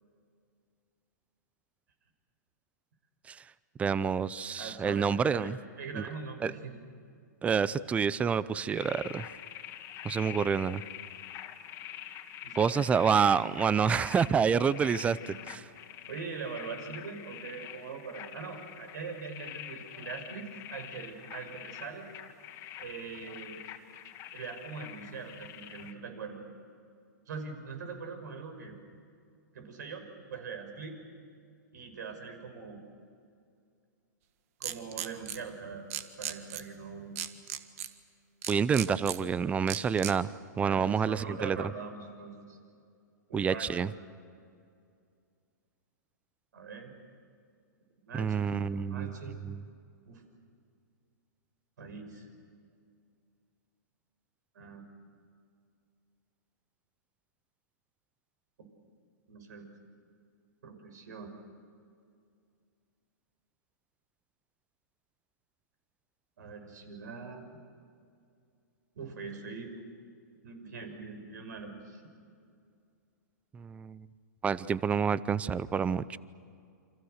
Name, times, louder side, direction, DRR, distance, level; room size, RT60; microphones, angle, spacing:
voice 1, 3.8-5.6 6.0-6.1 6.4-6.5 7.4-9.3 10.0-10.8 12.6-15.6 38.5-40.3 40.6-41.6 43.3-43.9 48.1-49.1 49.4-49.6 73.5-74.1 74.4-76.2, right 6 dB, 15° right, 19 dB, 0.6 m, -28 dB
voice 2, 4.6-6.8 12.4-12.8 15.2-15.4 16.1-22.1 22.8-23.6 24.3-26.4 27.3-28.7 29.5-31.0 31.7-32.8 34.6-35.9 36.2-37.1 40.6-42.6 43.3-43.9 46.5-46.9 48.1-49.3 50.1-50.2 51.8-52.3 54.5-54.8 59.3-59.7 60.6-61.3 66.4-67.4 68.9-69.7 70.4-72.0, right 5 dB, 70° right, 6 dB, 6.0 m, -42 dB
sound 1, 8.7-25.9, left 11 dB, 30° left, 2.0 m, -45 dB
sound 2, 34.6-35.4 35.9-36.6 37.2-37.9 38.4-39.2 39.7-40.1, right 11 dB, 50° right, 1.6 m, -35 dB
29.0 x 26.0 x 6.6 m, 2.4 s
hypercardioid pair, 135°, 10 cm